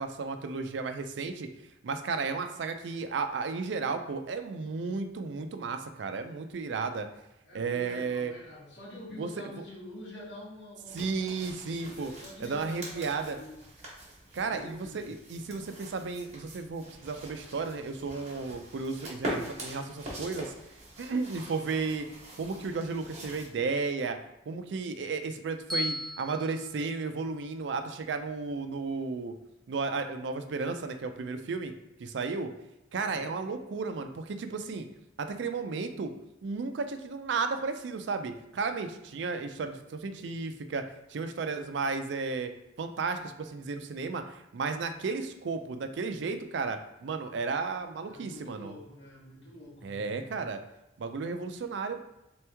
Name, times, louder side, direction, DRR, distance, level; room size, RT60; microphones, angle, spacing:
voice 1, 0.0-1.5 1.8-7.1 7.5-8.3 9.2-9.3 9.6-9.7 10.9-12.1 12.4-13.4 14.3-20.5 21.0-22.1 22.4-24.2 24.5-29.3 29.7-31.7 32.0-32.5 32.9-34.9 35.2-36.1 36.4-40.8 41.1-42.5 42.8-48.7 49.8-50.6 51.0-52.0, right 4 dB, 75° right, 8 dB, 0.4 m, -33 dB
voice 2, 7.4-13.6 14.4-15.2 33.0-33.4 48.0-50.4, left 1 dB, 85° left, -4 dB, 1.3 m, -47 dB
sound 1, 10.9-23.5, right 1 dB, 40° right, 1.3 m, -43 dB
Bell, 25.7-27.9, left 1 dB, ahead, 0.7 m, -38 dB
3.4 x 3.0 x 3.4 m, 0.91 s
head